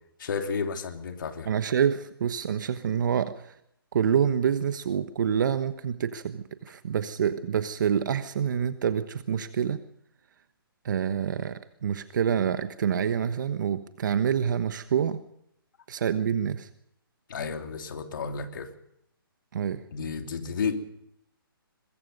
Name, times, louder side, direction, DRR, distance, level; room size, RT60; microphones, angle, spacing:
voice 1, 0.2-1.5 17.3-18.7 19.9-20.8, left 5 dB, 60° left, 5 dB, 2.8 m, -32 dB
voice 2, 1.5-3.5 3.9-9.8 10.8-15.2 15.9-16.7 19.5-19.8, right 8 dB, 55° right, 10 dB, 1.2 m, -27 dB
22.0 x 22.0 x 5.4 m, 0.75 s
hypercardioid pair, 150°, 12 cm